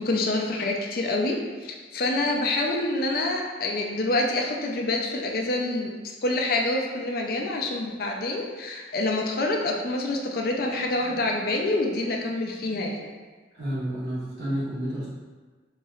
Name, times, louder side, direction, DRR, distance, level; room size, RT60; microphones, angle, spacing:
voice 1, 0.0-5.9 6.2-13.1, left 2 dB, 50° left, 0 dB, 0.4 m, -27 dB
voice 2, 13.5-15.1, right 1 dB, 70° right, -9 dB, 1.5 m, -30 dB
4.2 x 2.9 x 2.4 m, 1.4 s
head